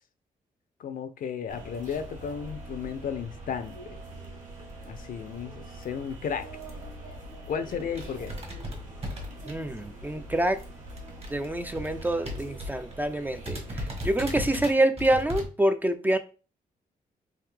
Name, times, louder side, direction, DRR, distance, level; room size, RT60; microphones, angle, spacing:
voice 1, 0.8-4.0 4.9-6.5 7.5-8.4 14.4-14.6, left 7 dB, 65° left, 0.5 m, -34 dB
sound 1, 1.5-14.5, right 1 dB, 55° right, 1.5 m, -43 dB
sound 2, 6.6-6.8 7.3-7.4 7.6-10.0 10.2-12.9 13.2-13.3 13.4-15.4, equal, 40° right, 1.3 m, -37 dB
voice 2, 9.5-10.6 11.3-16.2, right 1 dB, 10° right, 0.3 m, -26 dB
3.5 x 2.7 x 3.2 m
cardioid pair, 80°, 15 cm